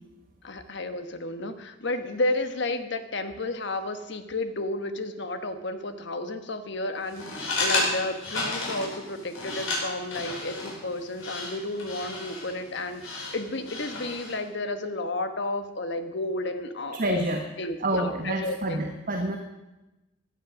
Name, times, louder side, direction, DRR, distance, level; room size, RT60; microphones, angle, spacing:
voice 1, 0.4-17.3 17.6-18.8, left 2 dB, 60° left, 8 dB, 1.3 m, -32 dB
sound 1, 7.1-14.4, left 2 dB, 80° left, 5.7 m, -33 dB
voice 2, 16.9-17.4 17.8-19.4, right 1 dB, 45° right, 4 dB, 1.2 m, -28 dB
16.0 x 10.5 x 6.3 m, 1.0 s
head